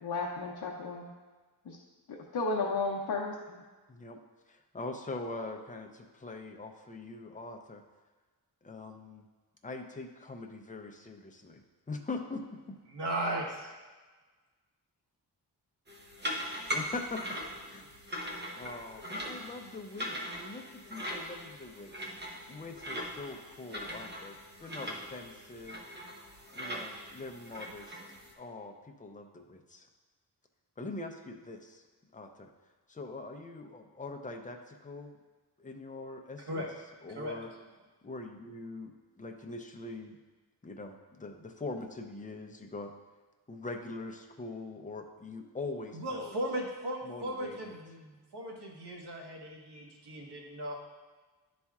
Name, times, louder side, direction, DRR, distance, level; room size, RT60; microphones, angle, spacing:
voice 1, 0.0-1.1 1.7-1.8 2.1-3.6, left 3 dB, 65° left, -3 dB, 0.7 m, -33 dB
voice 2, 3.9-4.2 4.5-7.8 8.6-9.3 9.6-11.6 11.9-12.8 16.7-17.2 17.7-17.9 18.6-21.9 22.5-25.8 26.5-28.0 28.4-29.9 30.8-31.8 32.1-32.5 32.9-35.2 35.6-36.7 37.0-37.5 38.0-38.9 39.2-40.2 40.6-42.9 43.5-46.3 47.0-47.7, left 3 dB, 20° left, 4 dB, 0.6 m, -42 dB
voice 3, 12.9-13.7 36.5-36.7 37.1-37.4 45.9-50.8, right 1 dB, 75° right, -1 dB, 1.3 m, -37 dB
sound 1, 15.9-28.3, equal, 25° right, 0.9 m, -40 dB
10.5 x 4.2 x 2.4 m, 1.3 s
wide cardioid pair, 105°, 40 cm